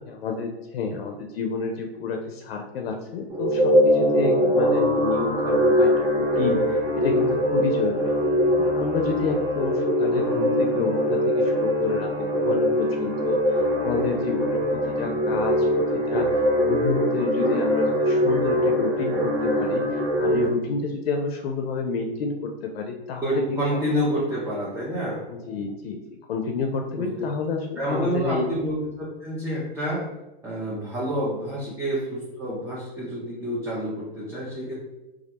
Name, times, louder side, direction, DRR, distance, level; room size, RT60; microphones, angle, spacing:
voice 1, 0.1-6.6 6.9-8.0 8.6-22.4 22.6-23.9 25.3-26.0 26.3-28.5 31.7-31.8, left 4 dB, 85° left, 3 dB, 0.4 m, -30 dB
sound 1, 3.3-20.5, equal, 35° right, 1.2 m, -22 dB
voice 2, 23.2-25.2 27.0-27.1 27.8-30.0 30.4-34.7, equal, 10° right, -6 dB, 0.5 m, -28 dB
2.3 x 2.1 x 2.8 m, 0.99 s
hypercardioid pair, 120°, 29 cm